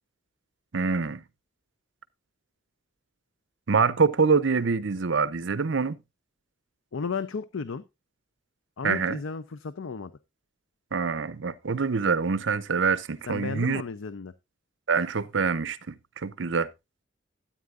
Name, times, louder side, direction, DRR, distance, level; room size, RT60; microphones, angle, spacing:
voice 1, 0.7-1.2 3.7-6.0 8.8-9.2 10.9-13.8 14.9-16.7, right 5 dB, 60° right, 0.6 m, -25 dB
voice 2, 6.9-7.8 8.8-10.1 13.3-14.3, left 5 dB, 70° left, 0.6 m, -34 dB
13.0 x 8.8 x 2.4 m
head